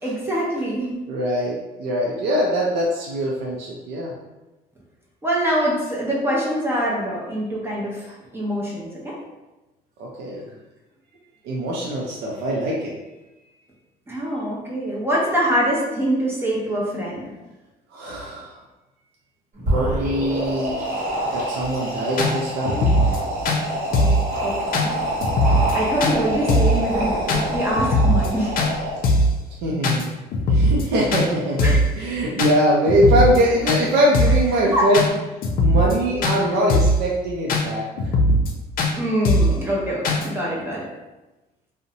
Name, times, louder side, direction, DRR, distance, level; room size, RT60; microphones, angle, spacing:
voice 1, 0.0-1.0 5.2-9.2 14.1-17.2 23.9-24.1 24.4-25.0 25.7-28.6 31.6-31.8 34.7-34.8 38.9-40.9, equal, 15° right, -5 dB, 0.6 m, -24 dB
voice 2, 1.1-4.1 10.0-10.5 11.4-13.0 17.9-18.6 19.7-20.8 21.3-23.0 29.6-30.1 30.5-35.1 35.6-38.1, equal, 80° right, -3 dB, 0.4 m, -22 dB
sound 1, 19.5-29.2, right 1 dB, 50° right, 1.0 m, -26 dB
sound 2, 21.6-21.7 22.2-22.3 22.6-23.2 23.4-23.6 23.9-24.2 24.7-24.9 25.2-25.7 26.0-26.1 26.5-26.8 27.3-27.4 27.8-28.3 28.6-28.7 29.0-29.3 29.8-30.0 30.3-30.8 31.1-31.3 31.6-31.9 32.4-32.5 32.9-33.4 33.7-33.8 34.1-34.4 34.9-35.1 35.4-35.9 36.2-36.4 36.7-37.0 37.5-37.6 38.0-38.5 38.8-38.9 39.2-39.6 40.0-40.3, left 1 dB, 60° left, 0.4 m, -19 dB
2.6 x 2.1 x 2.7 m, 1.1 s
cardioid pair, 110°, 17 cm